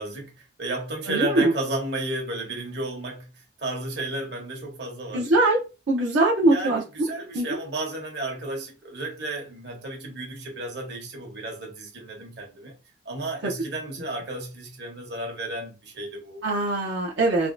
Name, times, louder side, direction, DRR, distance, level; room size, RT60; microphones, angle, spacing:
voice 1, 0.0-5.3 6.5-12.8 13.0-16.4, right 2 dB, 65° right, 1.1 m, -33 dB
voice 2, 1.1-1.5 5.1-5.6 5.9-6.8 7.3-7.5 13.4-13.5 16.4-17.5, right 2 dB, 80° right, 0.7 m, -22 dB
3.5 x 2.2 x 2.5 m
head